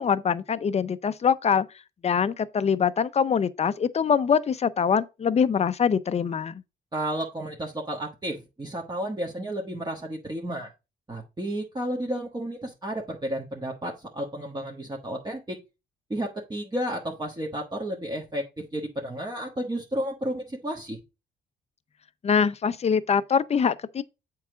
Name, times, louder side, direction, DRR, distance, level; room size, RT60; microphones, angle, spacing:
voice 1, 0.0-1.7 2.0-6.6 22.2-24.0, left 6 dB, 35° left, 0.5 m, -24 dB
voice 2, 6.9-10.7 11.1-15.6 16.1-21.0, right 1 dB, 20° right, 1.3 m, -32 dB
7.3 x 4.7 x 3.9 m
cardioid pair, 90°, 20 cm